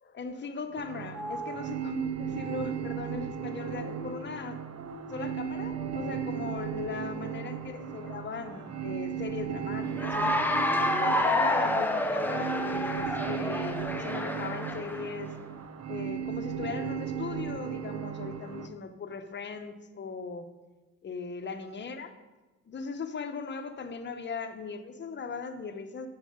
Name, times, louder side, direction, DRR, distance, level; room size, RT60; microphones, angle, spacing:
voice 1, 0.0-4.6 5.1-10.4 10.8-15.3 15.9-20.5 21.0-22.1 22.7-26.1, left 4 dB, 40° left, 8 dB, 0.8 m, -38 dB
sound 1, 0.7-13.5, right 2 dB, 85° right, 1.4 m, -48 dB
sound 2, 0.8-18.7, right 8 dB, 60° right, 0.8 m, -36 dB
Cheering / Applause, 9.9-15.1, left 1 dB, 5° left, 0.7 m, -28 dB
9.1 x 4.8 x 5.0 m, 1.2 s
cardioid pair, 90°, 30 cm